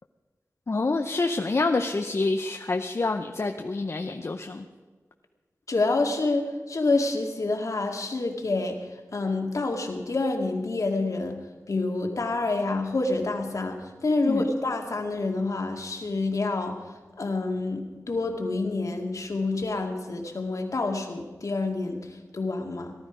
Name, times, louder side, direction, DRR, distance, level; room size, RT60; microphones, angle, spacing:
voice 1, 0.7-4.6 14.2-14.5, left 3 dB, 50° left, 5 dB, 0.7 m, -27 dB
voice 2, 5.7-8.9 9.1-16.8 17.2-22.9, left 3 dB, 65° left, 2 dB, 2.1 m, -28 dB
18.0 x 12.5 x 5.0 m, 1.4 s
wide cardioid pair, 90°, 6 cm